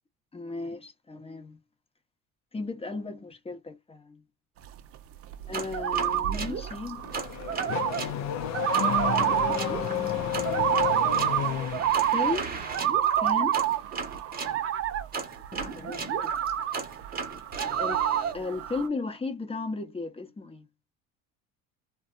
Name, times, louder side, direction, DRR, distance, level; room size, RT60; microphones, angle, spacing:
voice 1, 0.3-1.6 2.5-4.2 5.5-7.0 9.2-10.2 12.1-12.5 13.2-13.6 15.5-16.4 17.8-18.1 18.3-20.7, left 3 dB, 15° left, 0.9 m, -35 dB
sound 1, 4.6-18.9, right 11 dB, 40° right, 0.5 m, -28 dB
sound 2, 5.5-8.2 8.7-14.6 15.1-18.3, right 4 dB, 25° right, 1.0 m, -36 dB
Car / Accelerating revving vroom, 7.0-12.0, left 11 dB, 50° left, 0.6 m, -31 dB
2.6 x 2.3 x 2.4 m
supercardioid pair, 95°, 35 cm